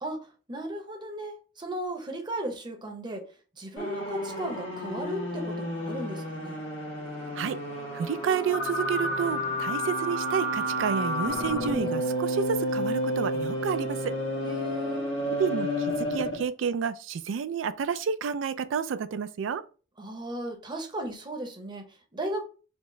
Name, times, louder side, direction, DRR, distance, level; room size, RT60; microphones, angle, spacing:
voice 1, 0.0-3.3 3.5-6.6 14.4-15.1 20.0-22.4, right 1 dB, 25° right, 0.7 m, -36 dB
sound 1, 3.8-16.5, equal, 85° left, 1.3 m, -31 dB
voice 2, 7.9-14.1 15.3-19.6, right 6 dB, 70° right, 0.3 m, -30 dB
4.5 x 2.0 x 3.1 m
head